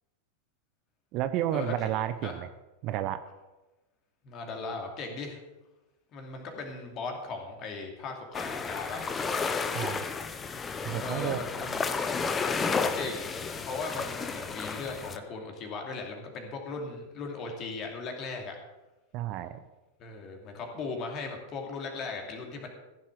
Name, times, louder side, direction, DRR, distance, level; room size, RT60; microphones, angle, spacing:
voice 1, 1.1-2.5 2.8-3.2 9.7-10.0 10.8-11.4 19.1-19.6, right 12 dB, 40° right, 11 dB, 0.7 m, -31 dB
voice 2, 4.2-5.4 6.1-9.6 11.0-11.9 12.7-18.6 20.0-22.7, left 3 dB, 35° left, 2 dB, 2.6 m, -38 dB
sound 1, 8.3-15.2, left 5 dB, 20° left, 0.8 m, -32 dB
15.0 x 7.4 x 6.4 m, 1.1 s
figure-of-eight pair, 90°, 0 cm